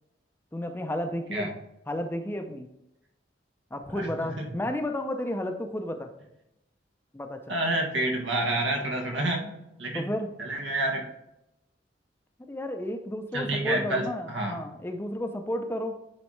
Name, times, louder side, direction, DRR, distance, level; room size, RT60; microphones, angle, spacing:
voice 1, 0.5-1.5 1.9-2.7 3.7-6.1 7.1-7.4 9.9-10.3 12.5-16.0, left 1 dB, 10° left, 6 dB, 0.5 m, -32 dB
voice 2, 7.5-9.5 9.8-10.1 10.4-11.1 13.3-14.6, right 1 dB, 85° right, 2 dB, 1.5 m, -28 dB
9.4 x 4.0 x 3.2 m, 0.85 s
head